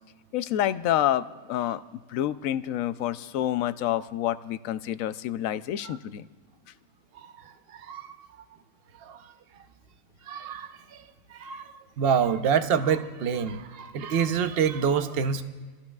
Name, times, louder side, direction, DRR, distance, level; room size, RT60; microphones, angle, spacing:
voice 1, 0.3-1.8 2.1-6.2, left 12 dB, 75° left, 14 dB, 1.0 m, -28 dB
voice 2, 7.7-8.1 9.0-9.2 10.3-11.0 11.3-11.7 12.0-15.4, right 7 dB, 50° right, 8 dB, 0.9 m, -26 dB
29.0 x 14.5 x 2.4 m, 1.5 s
omnidirectional pair, 1.5 m